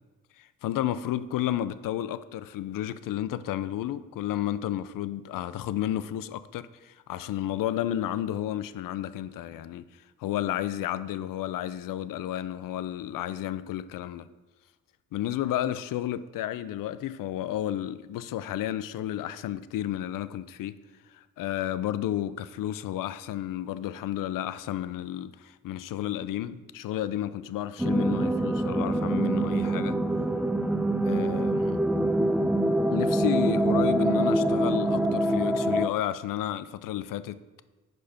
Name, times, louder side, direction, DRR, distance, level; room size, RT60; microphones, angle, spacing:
voice 1, 0.4-14.3 15.1-20.8 21.1-30.0 31.0-31.8 32.9-37.6, left 12 dB, 70° left, 0.5 m, -32 dB
sound 1, 27.8-35.9, right 1 dB, ahead, 0.4 m, -25 dB
6.7 x 4.9 x 5.7 m
cardioid pair, 70°, 34 cm